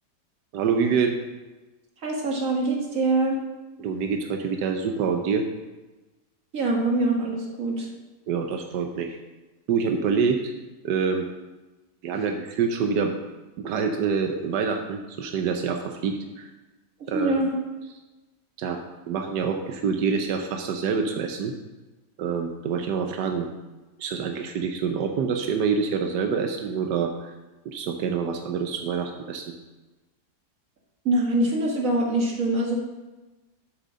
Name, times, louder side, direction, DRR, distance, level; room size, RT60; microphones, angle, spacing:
voice 1, 0.5-1.2 3.8-5.5 8.3-9.2 9.7-10.5 10.8-11.3 12.0-13.1 13.6-16.5 17.1-17.5 18.6-18.8 19.1-21.5 22.2-23.5 24.0-27.3 27.6-29.5, right 6 dB, 90° right, 5 dB, 1.4 m, -26 dB
voice 2, 2.0-3.4 6.5-7.9 17.1-17.5 31.1-32.8, right 2 dB, 55° right, 0 dB, 2.1 m, -24 dB
7.8 x 6.5 x 6.2 m, 1.1 s
omnidirectional pair, 1.7 m